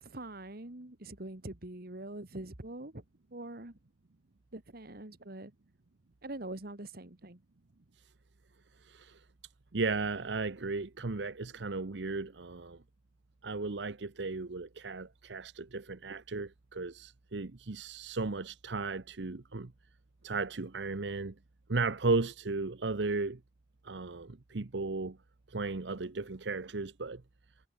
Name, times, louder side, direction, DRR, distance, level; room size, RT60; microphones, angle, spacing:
voice 1, 0.0-3.0 3.3-3.8 4.5-5.5 6.2-7.4, right 1 dB, 55° right, 2.2 m, -44 dB
voice 2, 8.8-9.2 9.7-12.8 13.4-19.7 20.2-21.3 21.7-23.4 23.8-25.2 25.5-27.2, right 3 dB, 75° right, 0.9 m, -35 dB
head